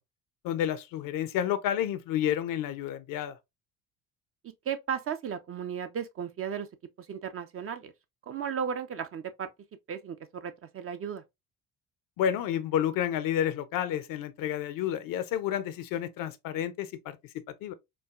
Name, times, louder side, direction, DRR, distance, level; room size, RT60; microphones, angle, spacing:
voice 1, 0.4-3.4 12.2-17.2 17.5-17.7, left 10 dB, 50° left, 0.6 m, -30 dB
voice 2, 4.7-6.7 7.0-7.9 8.2-9.5 9.9-11.2, right 7 dB, 30° right, 0.5 m, -35 dB
4.6 x 2.3 x 2.3 m
figure-of-eight pair, 55°, 43 cm